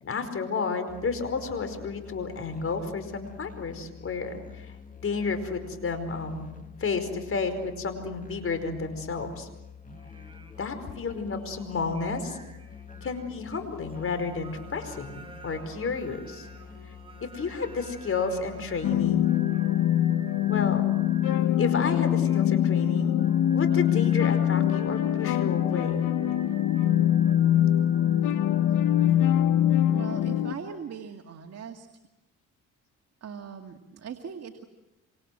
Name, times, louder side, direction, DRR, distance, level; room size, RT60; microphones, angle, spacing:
voice 1, 0.0-6.5 6.8-9.5 10.6-12.4 13.0-16.5 17.2-19.3 20.5-20.8 21.6-23.1 23.5-26.1, left 4 dB, 45° left, 9 dB, 4.9 m, -31 dB
Musical instrument, 0.9-19.2, left 7 dB, 25° left, 2.1 m, -47 dB
Singing, 9.8-29.5, right 2 dB, 15° right, 5.2 m, -50 dB
sound 1, 18.8-30.6, left 11 dB, 85° left, 1.3 m, -23 dB
voice 2, 29.9-31.9 33.2-34.6, right 7 dB, 55° right, 5 dB, 2.2 m, -40 dB
26.5 x 26.0 x 7.8 m, 0.96 s
cardioid pair, 90°, 30 cm